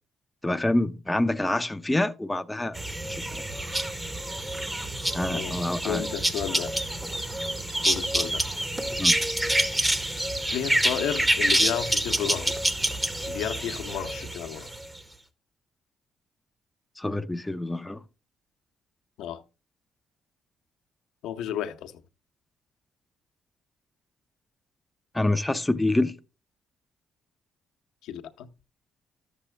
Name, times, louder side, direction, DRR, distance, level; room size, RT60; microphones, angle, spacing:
voice 1, 0.4-2.8 3.1-3.4 5.1-6.0 9.0-9.2 17.0-18.0 25.1-26.2, left 1 dB, 10° left, 0.5 m, -26 dB
sound 1, 2.7-15.0, right 1 dB, 15° right, 0.8 m, -27 dB
voice 2, 5.3-6.8 7.8-8.4 10.5-12.6 13.3-14.7 19.2-19.4 21.2-21.9 28.0-28.5, left 10 dB, 90° left, 0.7 m, -32 dB
12.5 x 7.1 x 3.2 m
cardioid pair, 90°, 0 cm